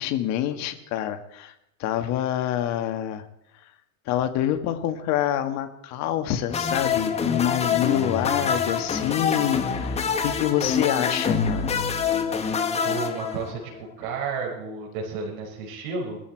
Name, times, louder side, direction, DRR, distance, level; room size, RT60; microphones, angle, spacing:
voice 1, 0.0-1.5 1.8-3.2 4.1-11.7, left 11 dB, 35° left, 7 dB, 1.7 m, -26 dB
sound 1, 6.5-13.8, left 6 dB, 15° left, 1.2 m, -26 dB
voice 2, 12.8-16.2, right 4 dB, 50° right, -4 dB, 6.2 m, -32 dB
20.5 x 14.5 x 4.7 m, 0.82 s
supercardioid pair, 145°, 44 cm